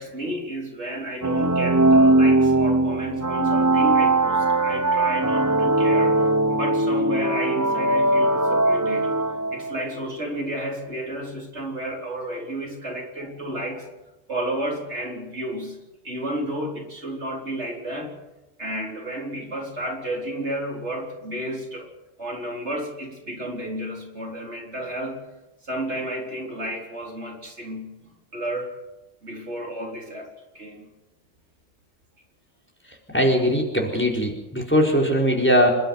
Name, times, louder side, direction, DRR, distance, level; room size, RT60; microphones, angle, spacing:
voice 1, 0.0-9.2 9.5-13.9 14.3-18.2 18.6-21.9 22.2-25.2 25.6-28.8 29.2-30.9, right 1 dB, 60° right, 0 dB, 4.4 m, -32 dB
sound 1, 1.2-9.8, right 2 dB, 15° right, 0.7 m, -20 dB
voice 2, 33.1-35.7, equal, 10° left, 0 dB, 4.5 m, -20 dB
28.0 x 12.0 x 9.5 m, 1.0 s
omnidirectional pair, 1.3 m